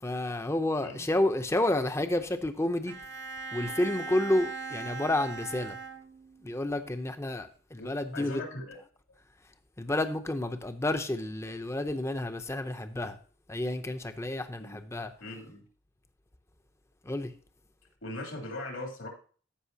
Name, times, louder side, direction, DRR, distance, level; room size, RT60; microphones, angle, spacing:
voice 1, 0.0-2.9 3.5-5.8 6.4-8.4 9.8-13.2 13.5-15.1 17.0-17.3, left 1 dB, 15° left, 0.6 m, -30 dB
Bowed string instrument, 2.9-6.5, right 4 dB, 55° right, 0.5 m, -40 dB
voice 2, 7.8-8.8 14.6-14.8 15.2-15.6 18.0-19.1, left 1 dB, 80° left, 3.0 m, -40 dB
14.0 x 5.3 x 2.7 m
head